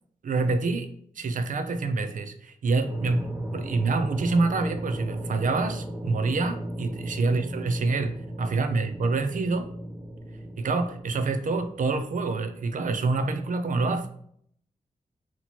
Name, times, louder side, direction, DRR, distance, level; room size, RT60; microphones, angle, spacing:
voice 1, 0.2-0.9 1.2-9.7 10.6-14.1, right 3 dB, 65° right, 8 dB, 0.5 m, -27 dB
sound 1, 2.9-12.8, right 1 dB, 15° right, 0.6 m, -36 dB
2.9 x 2.9 x 4.1 m, 0.65 s
wide cardioid pair, 100°, 14 cm